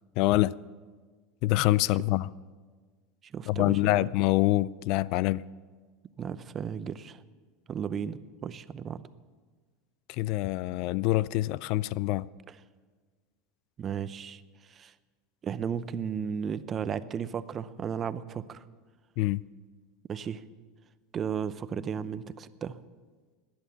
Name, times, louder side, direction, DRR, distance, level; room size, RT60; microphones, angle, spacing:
voice 1, 0.2-0.5 1.4-2.3 3.5-5.4 10.2-12.3 19.2-19.4, left 17 dB, 60° left, 0.3 m, -25 dB
voice 2, 3.3-4.0 6.2-7.2 7.7-9.0 13.8-14.4 14.7-14.9 15.4-18.6 20.1-20.4 21.1-22.8, right 7 dB, 30° right, 0.7 m, -34 dB
18.5 x 10.5 x 7.0 m
supercardioid pair, 120°, 0 cm